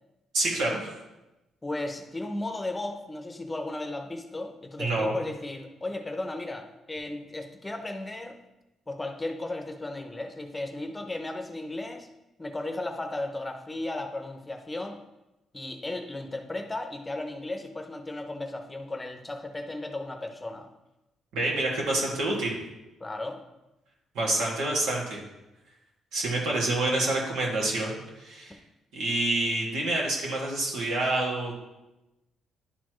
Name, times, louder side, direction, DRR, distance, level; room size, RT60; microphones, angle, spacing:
voice 1, 0.3-0.9 4.8-5.2 21.3-22.6 24.1-25.2 26.1-28.5 28.9-31.5, right 2 dB, 90° right, -3 dB, 2.1 m, -27 dB
voice 2, 1.6-8.4 8.9-12.1 12.4-15.0 15.5-20.7 23.0-23.4, left 2 dB, 20° left, 6 dB, 0.7 m, -35 dB
11.0 x 4.3 x 3.1 m, 0.99 s
cardioid pair, 90°, 0 cm